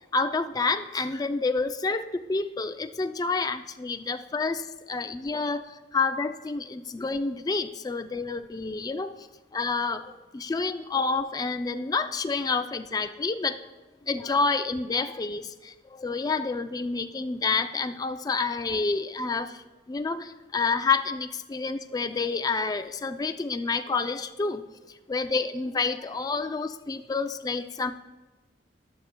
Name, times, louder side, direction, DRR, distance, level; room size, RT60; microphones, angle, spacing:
voice 1, 0.1-13.6 14.0-19.6 19.9-27.9, left 4 dB, 20° left, 8 dB, 0.3 m, -29 dB
14.0 x 10.5 x 2.2 m, 1.1 s
head